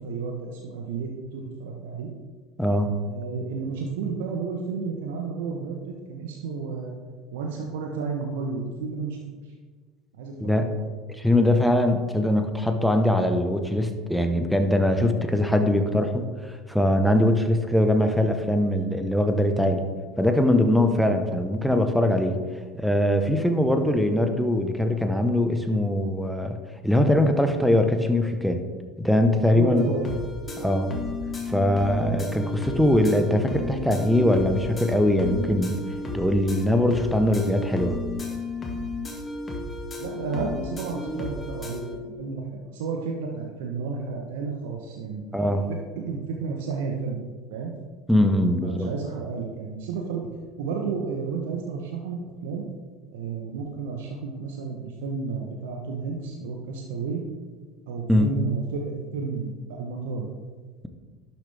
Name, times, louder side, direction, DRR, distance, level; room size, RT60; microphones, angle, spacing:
voice 1, 0.0-2.1 3.1-6.9 7.3-9.2 9.4-9.5 10.1-10.8 29.5-30.1 30.6-30.7 40.0-45.2 45.7-47.2 47.5-47.7 48.6-50.3 50.6-52.7 53.1-57.2 57.9-60.3, right 5 dB, 70° right, 1 dB, 1.1 m, -32 dB
voice 2, 2.6-2.9 10.4-10.7 11.1-19.8 20.2-22.4 22.8-26.6 26.8-28.6 29.0-29.9 30.6-30.9 31.5-35.8 36.1-38.0 45.3-45.6 48.1-48.9 58.1-58.3, left 1 dB, ahead, 6 dB, 1.2 m, -22 dB
sound 1, 29.8-42.0, left 3 dB, 30° left, 1.9 m, -33 dB
11.5 x 7.5 x 3.5 m, 1.5 s
hypercardioid pair, 75°, 0 cm